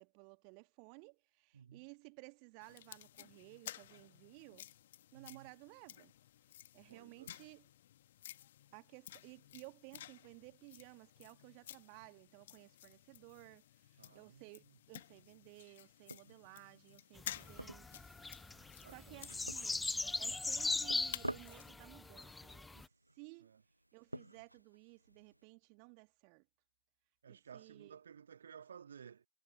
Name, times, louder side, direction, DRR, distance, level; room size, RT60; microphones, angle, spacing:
voice 1, 0.0-4.7 5.1-6.1 6.7-7.6 8.7-18.0 18.9-19.9 20.2-22.9 23.1-23.5 23.9-26.5 27.3-28.0, right 40 dB or more, 45° right, 2.0 m, -57 dB
sound 1, 2.6-21.7, left 12 dB, 60° left, 1.6 m, -54 dB
voice 2, 5.1-5.5 6.9-7.3 14.0-14.8 18.8-20.4 23.4-23.6 27.2-29.3, right 7 dB, 70° right, 1.7 m, -57 dB
sound 2, 16.1-25.4, right 1 dB, 85° right, 0.7 m, -52 dB
sound 3, 17.2-22.9, left 3 dB, 10° left, 0.3 m, -39 dB
figure-of-eight pair, 90°, 0 cm